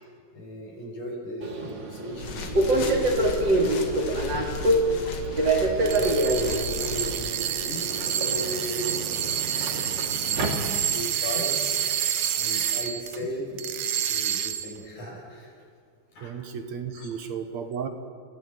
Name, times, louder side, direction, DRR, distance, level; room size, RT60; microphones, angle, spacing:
voice 1, 0.3-4.3 4.5-5.1 6.0-9.3 10.0-11.8 12.4-15.5 16.1-16.3 16.9-17.1, equal, 80° left, -1 dB, 7.4 m, -36 dB
Subway metro underground, 1.4-11.2, right 2 dB, 40° right, 2.9 m, -26 dB
sound 1, 2.1-7.3, left 5 dB, 55° left, 2.6 m, -36 dB
sound 2, 5.8-13.2 13.6-14.8, right 9 dB, 85° right, 2.6 m, -28 dB
voice 2, 16.2-17.9, right 7 dB, 70° right, 8 dB, 2.4 m, -34 dB
29.5 x 16.5 x 8.1 m, 2.2 s
omnidirectional pair, 3.4 m